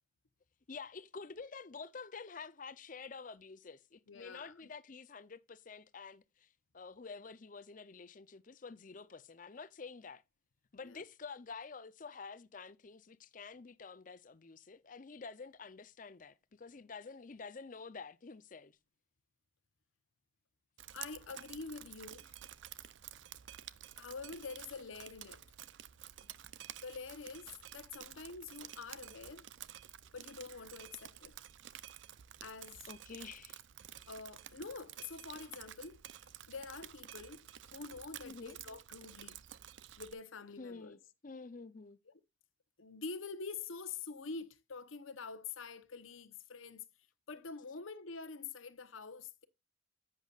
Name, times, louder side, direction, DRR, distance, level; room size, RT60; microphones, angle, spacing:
voice 1, 0.7-10.2 10.7-18.8 32.9-33.6 38.2-38.6 40.6-42.0, left 4 dB, 40° left, 0.5 m, -49 dB
voice 2, 4.1-4.5 10.8-11.0 20.9-22.3 24.0-25.4 26.2-26.5 26.8-29.5 30.1-31.4 32.4-32.8 34.1-36.0 36.5-39.4 40.0-41.0 42.1-42.2 42.8-46.9 47.3-49.4, left 4 dB, 80° left, 0.9 m, -46 dB
Drip, 20.8-40.1, right 11 dB, 65° right, 0.5 m, -51 dB
10.5 x 8.2 x 2.4 m
head